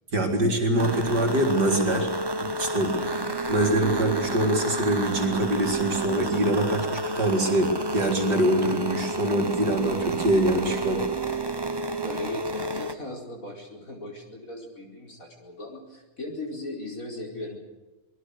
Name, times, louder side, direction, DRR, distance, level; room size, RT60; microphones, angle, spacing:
voice 1, 0.1-2.1 2.4-2.9 3.5-11.0, right 1 dB, 50° right, 2 dB, 4.3 m, -24 dB
sound 1, 0.8-12.9, right 2 dB, 25° right, 0.5 m, -30 dB
voice 2, 2.9-3.3 12.0-17.6, left 1 dB, 40° left, 0 dB, 5.1 m, -38 dB
26.5 x 20.5 x 6.5 m, 1.2 s
omnidirectional pair, 2.3 m